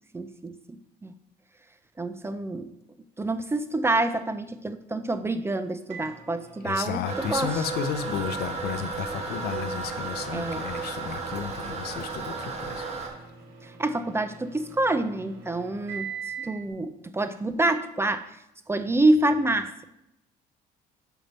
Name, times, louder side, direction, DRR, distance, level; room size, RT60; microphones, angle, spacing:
voice 1, 0.1-0.6 1.0-1.1 2.0-2.7 3.2-7.6 10.3-10.7 13.6-16.1 16.4-18.3 18.7-19.8, right 2 dB, 15° right, 11 dB, 0.4 m, -27 dB
Microwave oven, 5.9-16.7, right 6 dB, 85° right, 1.5 m, -44 dB
voice 2, 6.6-12.8, left 8 dB, 70° left, 11 dB, 0.6 m, -33 dB
Toilet flush, 7.0-13.1, right 4 dB, 40° right, 1.3 m, -34 dB
6.5 x 4.5 x 5.3 m, 0.85 s
cardioid pair, 110°, 17 cm